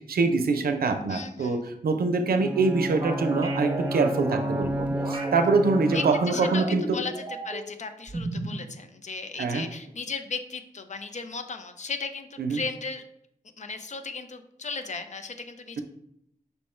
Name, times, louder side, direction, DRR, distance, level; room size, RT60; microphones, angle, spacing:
voice 1, 0.1-7.0 9.4-9.7 12.4-12.6, right 3 dB, 90° right, 6 dB, 0.5 m, -24 dB
voice 2, 1.1-1.6 5.9-13.0 13.6-15.8, left 4 dB, 50° left, 8 dB, 0.5 m, -36 dB
Bowed string instrument, 2.4-6.6, right 1 dB, 10° right, 0.4 m, -31 dB
sound 1, 3.0-5.4 5.9-7.7 8.1-8.6, right 2 dB, 30° right, 0.8 m, -35 dB
5.5 x 2.1 x 4.3 m, 0.73 s
wide cardioid pair, 65°, 15 cm